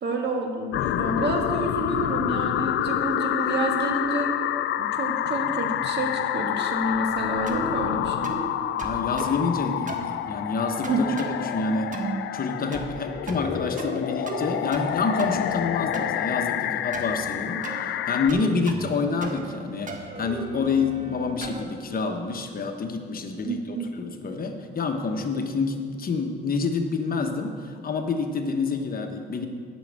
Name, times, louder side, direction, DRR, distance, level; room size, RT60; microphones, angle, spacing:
voice 1, 0.0-4.3 4.8-8.3 10.9-11.2 23.4-23.9, right 2 dB, 60° right, 2 dB, 1.7 m, -29 dB
sound 1, 0.7-18.3, left 11 dB, 75° left, 0.4 m, -28 dB
sound 2, 7.5-7.8 8.2-8.5 8.8-9.4 9.9-10.1 10.8-11.3 11.9-12.2 12.7-13.0 13.3-14.0 14.3-14.9 15.2-16.1 16.9-17.2 17.6-17.8 18.3-18.9 19.2-19.6 19.9-21.7, right 3 dB, 40° right, 1.4 m, -35 dB
voice 2, 8.8-10.9 11.3-12.0 12.3-19.9 20.2-23.6 24.0-29.5, left 4 dB, 45° left, 5 dB, 1.1 m, -27 dB
8.9 x 6.3 x 8.0 m, 2.1 s
cardioid pair, 90°, 20 cm